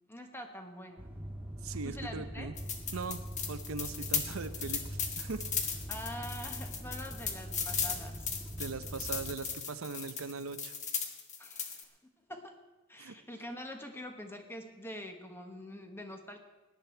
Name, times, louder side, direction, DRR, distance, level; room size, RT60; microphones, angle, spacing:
voice 1, 0.1-1.1 1.8-2.5 5.9-8.3 11.4-12.6 12.9-16.4, equal, 10° left, 5 dB, 1.3 m, -45 dB
sound 1, 1.0-9.4, equal, 5° right, 2.2 m, -43 dB
voice 2, 1.6-2.5 2.9-3.2 3.5-4.8 5.2-5.4 8.6-10.8 13.0-13.1, right 4 dB, 75° right, 11 dB, 0.7 m, -40 dB
sound 2, 2.6-11.8, left 6 dB, 35° left, 1.3 m, -37 dB
17.5 x 10.5 x 4.5 m, 1.2 s
head